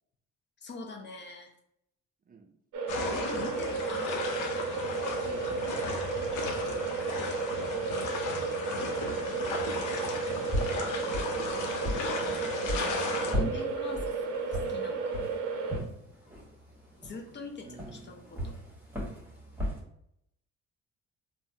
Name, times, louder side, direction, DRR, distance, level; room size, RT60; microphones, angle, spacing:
voice 1, 0.6-1.5 2.9-4.6 13.2-15.2 17.0-18.5, left 3 dB, 35° left, 2 dB, 0.6 m, -43 dB
voice 2, 2.3-2.6 5.2-6.6 9.4-11.1 17.6-18.4, right 4 dB, 30° right, 3 dB, 0.4 m, -50 dB
sound 1, 2.7-15.8, right 4 dB, 80° right, 0.6 m, -33 dB
sound 2, 2.9-13.3, left 4 dB, 80° left, 0.6 m, -36 dB
sound 3, 10.2-19.8, equal, 5° right, 1.1 m, -37 dB
3.4 x 2.0 x 2.6 m, 0.74 s
cardioid pair, 90°, 30 cm